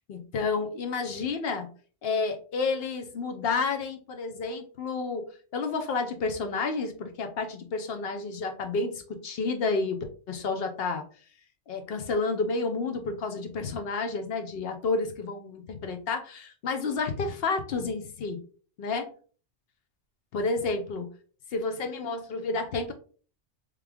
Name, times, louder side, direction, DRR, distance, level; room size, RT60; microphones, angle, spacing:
voice 1, 0.1-1.7 2.0-5.2 5.5-10.0 10.3-11.0 11.7-18.4 18.8-19.1 20.3-21.1 21.5-22.9, left 4 dB, 60° left, 6 dB, 0.9 m, -30 dB
3.3 x 3.3 x 3.4 m, 0.41 s
omnidirectional pair, 1.2 m